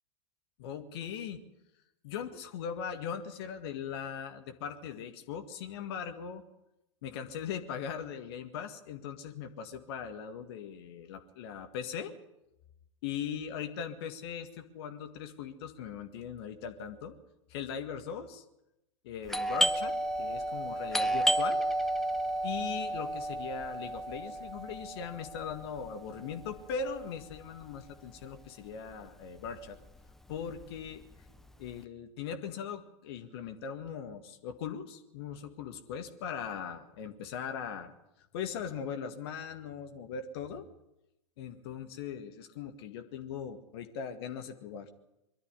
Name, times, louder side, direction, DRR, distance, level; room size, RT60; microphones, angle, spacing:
voice 1, 0.6-1.4 2.0-6.4 7.0-12.1 13.0-17.1 17.5-18.4 19.0-21.6 22.4-29.8 30.3-31.0 31.6-37.9 38.3-40.7 41.4-44.9, left 7 dB, 55° left, 7 dB, 1.9 m, -40 dB
Doorbell, 19.3-28.7 28.9-29.0 29.7-30.0 30.3-31.7, right 1 dB, ahead, 0.8 m, -32 dB
22.5 x 12.5 x 9.8 m, 0.88 s
figure-of-eight pair, 90°, 16 cm